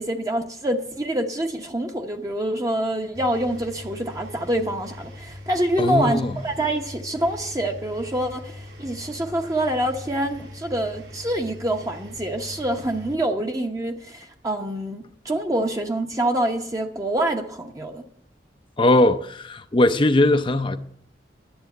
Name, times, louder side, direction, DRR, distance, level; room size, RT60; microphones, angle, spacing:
voice 1, 0.0-18.0, right 1 dB, 20° right, 0.9 m, -26 dB
Engine, 3.1-13.1, left 1 dB, 75° right, 2.8 m, -41 dB
voice 2, 5.8-6.3 18.8-20.8, left 1 dB, 30° left, 0.6 m, -19 dB
10.5 x 8.1 x 8.0 m
head